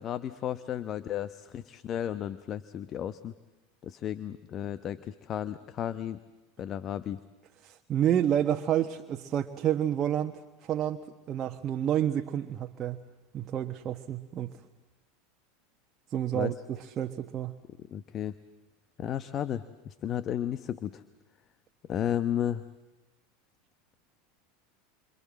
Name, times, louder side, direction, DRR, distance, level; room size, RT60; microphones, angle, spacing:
voice 1, 0.0-3.3 3.8-6.2 6.6-7.2 16.3-16.5 17.9-18.3 19.0-21.0 21.9-22.6, left 10 dB, 40° left, 14 dB, 1.0 m, -33 dB
voice 2, 7.6-13.0 13.3-14.6 16.1-17.6, right 10 dB, 35° right, 6 dB, 1.3 m, -29 dB
28.5 x 27.0 x 7.6 m, 1.1 s
hypercardioid pair, 80°, 0 cm